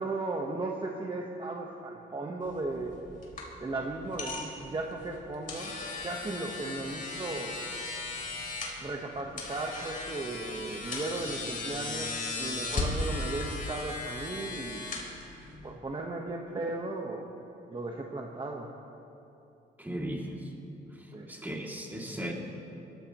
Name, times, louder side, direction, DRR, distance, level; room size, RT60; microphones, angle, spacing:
voice 1, 0.0-2.9 3.6-5.7 6.0-7.5 8.8-12.1 12.4-14.8 15.6-17.3 17.7-18.7 21.1-21.3, right 2 dB, 25° right, 1 dB, 1.3 m, -36 dB
sound 1, 2.4-15.7, left 2 dB, 40° left, 3.8 m, -37 dB
voice 2, 19.8-20.4 21.3-22.3, equal, 10° right, -2 dB, 2.7 m, -36 dB
23.5 x 14.0 x 3.1 m, 2.8 s
cardioid pair, 90°, 20 cm